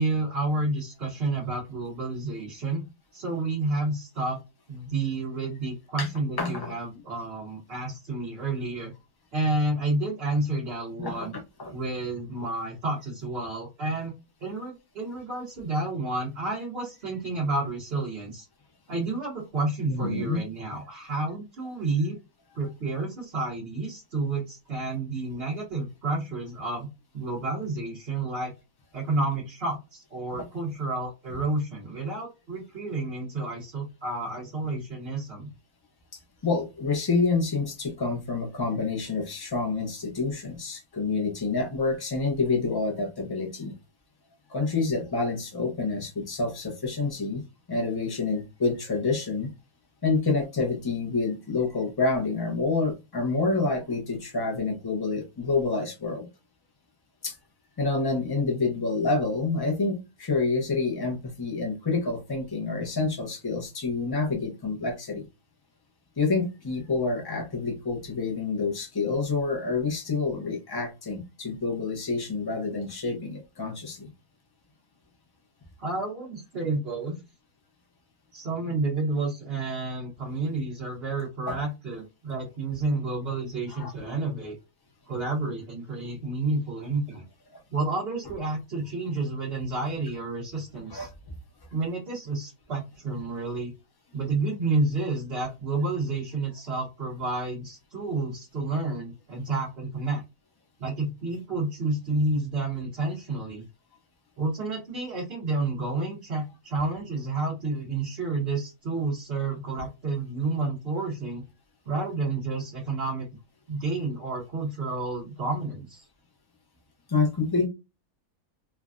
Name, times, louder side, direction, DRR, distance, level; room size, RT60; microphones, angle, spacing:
voice 1, 0.0-2.8 3.1-4.4 4.7-8.9 9.3-11.3 11.7-14.1 14.4-18.5 18.9-22.1 22.5-26.9 27.1-28.5 28.9-35.5 75.8-77.2 78.3-84.6 85.1-87.2 87.7-91.1 91.7-93.7 94.1-100.2 100.8-103.6 104.4-111.4 111.9-113.3 113.7-116.1, right 2 dB, 45° right, -4 dB, 1.1 m, -30 dB
voice 2, 6.4-6.7 11.0-11.7 19.9-20.4 36.4-43.7 44.5-47.4 47.7-49.5 50.0-56.3 57.2-57.4 57.8-65.3 66.2-74.1 81.5-81.6 83.7-83.9 90.9-91.1 117.1-117.7, left 3 dB, 35° left, 3 dB, 0.4 m, -28 dB
3.3 x 2.2 x 2.4 m, 0.25 s
omnidirectional pair, 1.6 m